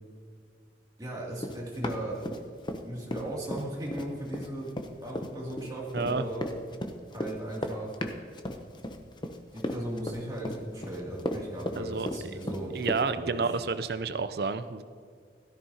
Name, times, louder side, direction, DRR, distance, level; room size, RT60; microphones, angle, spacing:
voice 1, 1.0-2.2 2.8-4.7 5.0-6.4 7.1-7.9 9.5-12.8 13.1-13.6, right 1 dB, 20° right, -5 dB, 2.6 m, -37 dB
Run, 1.4-2.8 3.1-13.0, left 1 dB, 25° left, 0.7 m, -35 dB
voice 2, 5.9-6.2 11.8-12.1 12.7-14.8, right 4 dB, 60° right, 12 dB, 0.5 m, -30 dB
16.5 x 13.5 x 2.9 m, 2.1 s
head